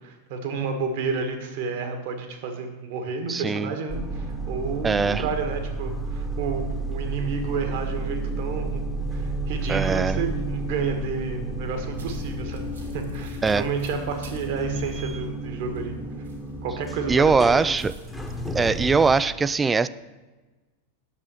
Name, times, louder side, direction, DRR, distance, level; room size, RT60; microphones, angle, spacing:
voice 1, 0.0-8.8 9.1-12.7 12.9-15.9 16.6-17.3, right 5 dB, 50° right, 5 dB, 1.8 m, -31 dB
voice 2, 3.3-3.7 4.8-5.3 9.7-10.2 13.4-13.6 17.1-17.9 18.5-19.9, right 4 dB, 15° right, 16 dB, 0.3 m, -21 dB
sound 1, 3.9-19.2, right 2 dB, 5° left, 1.2 m, -31 dB
sound 2, 11.9-16.9 17.2-18.8, equal, 75° right, 2.1 m, -46 dB
9.9 x 7.0 x 6.6 m, 1.2 s
figure-of-eight pair, 90°, 0 cm